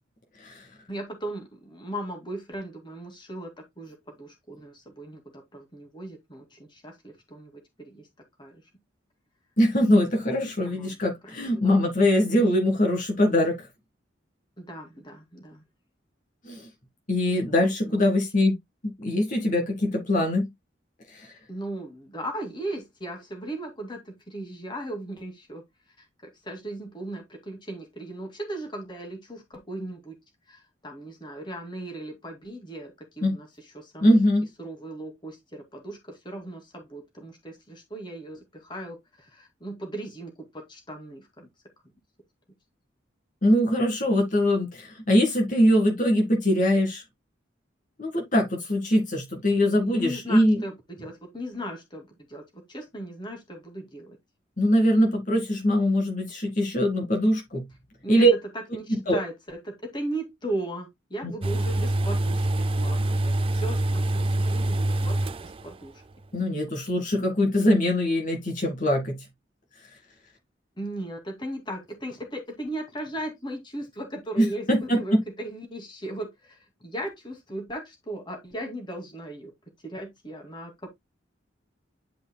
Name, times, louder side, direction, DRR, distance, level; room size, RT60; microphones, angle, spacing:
voice 1, 0.9-8.1 8.4-8.5 10.6-11.0 11.2-11.3 11.6-11.9 12.3-12.4 14.6-15.6 17.3-18.1 21.5-25.6 26.2-30.2 30.5-34.2 34.6-41.5 49.6-54.2 58.0-58.3 58.7-62.4 62.8-65.9 70.8-79.5 79.8-80.9, right 1 dB, 25° left, 2.3 m, -37 dB
voice 2, 9.6-13.7 16.4-16.7 17.1-18.6 18.8-20.5 21.1-21.3 33.2-33.3 34.0-34.5 43.4-47.0 48.0-50.6 54.6-57.6 58.1-58.3 58.9-59.2 61.2-61.3 66.3-69.2 74.4-75.2, equal, 45° left, 2.0 m, -22 dB
sound 1, 61.4-65.9 66.1-66.2, right 1 dB, 30° right, 0.4 m, -25 dB
11.0 x 5.2 x 2.2 m
head